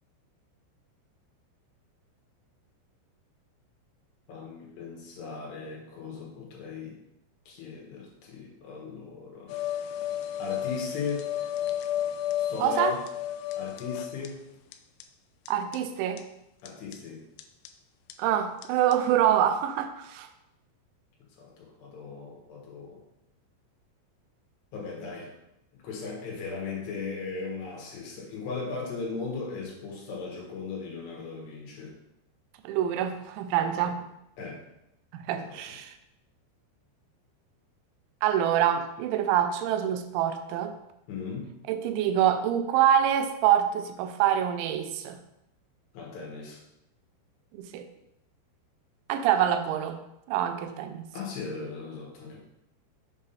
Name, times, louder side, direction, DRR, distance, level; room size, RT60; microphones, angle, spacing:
voice 1, 4.3-7.0 7.5-9.6 10.4-11.3 12.4-13.0 13.6-14.4 16.6-17.2 21.3-23.0 24.7-25.4 25.8-31.9 33.6-33.9 34.4-34.6 35.3-35.7 41.1-41.5 45.9-46.6 51.1-52.4, left 4 dB, 70° left, -2 dB, 3.4 m, -37 dB
sound 1, 9.5-14.3 14.7-14.8 15.0-15.1 15.5-15.6 15.7-15.8 16.2-16.3 16.7-16.9 17.4-17.7 18.1-18.2 18.6-18.7 18.9-19.0, left 11 dB, 85° left, 3.0 m, -32 dB
voice 2, 12.6-13.0 15.5-16.2 18.2-20.3 32.6-34.0 35.1-35.9 38.2-40.7 41.7-45.2 47.5-47.9 49.1-50.0 50.3-51.0, right 10 dB, 85° right, 8 dB, 3.0 m, -25 dB
7.8 x 3.7 x 5.6 m, 0.82 s
omnidirectional pair, 5.4 m